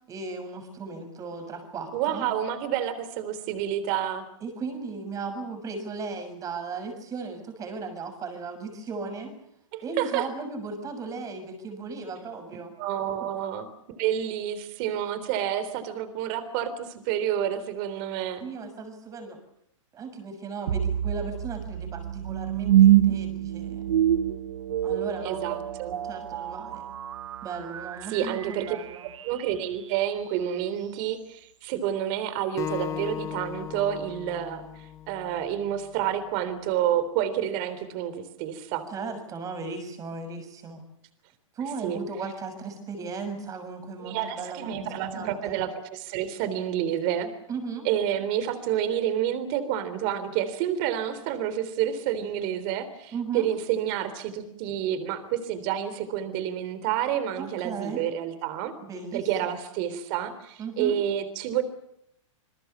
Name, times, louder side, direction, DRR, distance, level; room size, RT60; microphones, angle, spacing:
voice 1, 0.1-2.2 4.4-9.4 9.8-12.7 13.2-13.3 18.4-19.4 19.9-23.9 24.8-25.4 26.0-26.8 27.4-29.1 38.9-40.8 41.5-45.6 47.5-47.9 53.1-53.5 57.4-58.0 58.8-59.6 60.6-61.0, right 4 dB, 20° right, 7 dB, 6.5 m, -36 dB
voice 2, 1.9-4.2 9.7-10.3 12.8-18.5 25.2-26.0 28.1-28.8 29.2-38.9 41.8-42.0 44.0-47.3 47.9-58.7 59.1-61.6, right 10 dB, 40° right, 12 dB, 3.5 m, -29 dB
sound 1, 20.7-29.8, right 11 dB, 70° right, 1.1 m, -26 dB
Acoustic guitar, 32.6-35.9, left 10 dB, 20° left, 1.1 m, -37 dB
28.0 x 22.0 x 6.9 m, 0.77 s
hypercardioid pair, 145°, 17 cm